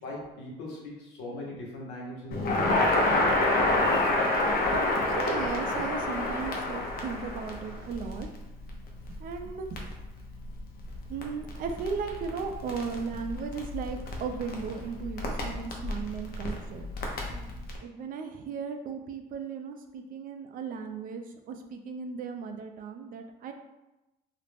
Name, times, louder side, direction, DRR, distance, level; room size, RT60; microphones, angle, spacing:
voice 1, 0.0-2.6 17.2-17.6, left 1 dB, 85° left, -3 dB, 0.9 m, -40 dB
Crackle, 2.3-17.8, left 2 dB, 65° left, 0.6 m, -29 dB
voice 2, 3.1-3.5 4.4-8.3 9.2-9.8 11.1-16.9 17.8-23.5, right 5 dB, 55° right, 5 dB, 0.4 m, -36 dB
2.4 x 2.0 x 3.3 m, 0.98 s
cardioid pair, 110°, 17 cm